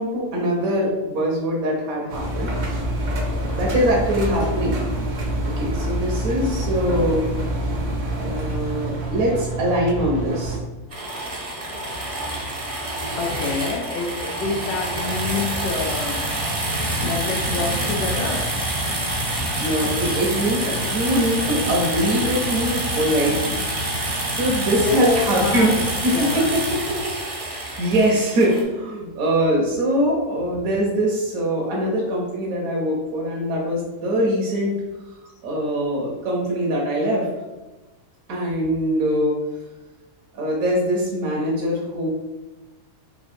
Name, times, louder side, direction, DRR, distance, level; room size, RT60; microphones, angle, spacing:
voice 1, 0.0-2.5 3.1-4.8 5.4-7.3 8.2-10.6 19.6-25.7 26.0-27.1 27.4-34.7 35.4-37.3 38.3-39.4 40.3-42.1, equal, 65° right, -3 dB, 1.1 m, -23 dB
Engine, 2.1-10.6, right 1 dB, 80° right, 0.4 m, -26 dB
sound 1, 10.9-28.6, right 1 dB, 30° right, 0.6 m, -26 dB
voice 2, 13.2-16.2 17.0-18.5 24.8-25.9 26.1-26.6, left 5 dB, 70° left, 3 dB, 0.6 m, -27 dB
3.4 x 2.7 x 4.3 m, 1.2 s
omnidirectional pair, 1.7 m